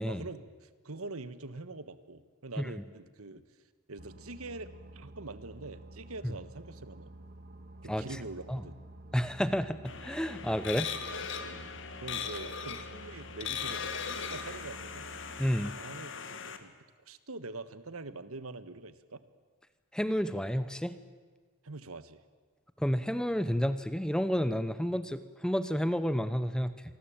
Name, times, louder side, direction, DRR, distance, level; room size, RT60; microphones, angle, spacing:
voice 1, 0.1-3.4 3.9-7.1 7.8-8.8 11.4-11.7 12.0-15.1 15.7-16.7 17.1-19.2 21.6-22.2, right 2 dB, 80° right, 13 dB, 1.5 m, -44 dB
Boat Water vehicle, 4.0-15.5, right 1 dB, 40° right, 2.1 m, -50 dB
voice 2, 9.1-10.9 15.4-15.8 19.9-20.9 22.8-26.8, equal, 5° left, 13 dB, 0.9 m, -30 dB
sound 1, 9.9-16.6, left 6 dB, 55° left, 2.0 m, -39 dB
27.0 x 20.0 x 8.9 m, 1.5 s
head